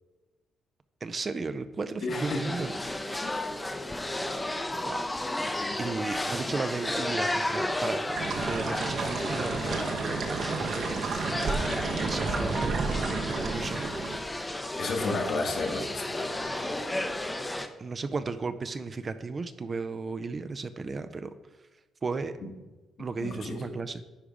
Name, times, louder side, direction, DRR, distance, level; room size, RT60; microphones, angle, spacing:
voice 1, 1.0-2.7 4.7-5.0 5.8-11.6 12.0-13.9 17.8-21.3 22.0-22.3 23.0-24.0, right 4 dB, 35° right, 11 dB, 0.5 m, -35 dB
voice 2, 2.0-2.6 3.2-3.4 4.1-4.2 5.4-5.9 14.8-16.8 22.4-22.5 23.0-23.8, left 3 dB, 60° left, 1 dB, 1.5 m, -34 dB
sound 1, 2.1-17.7, left 1 dB, 15° left, 0.6 m, -33 dB
sound 2, 8.1-14.2, right 4 dB, 70° right, 1.1 m, -31 dB
10.0 x 3.4 x 5.0 m, 1.2 s
cardioid pair, 90°, 0 cm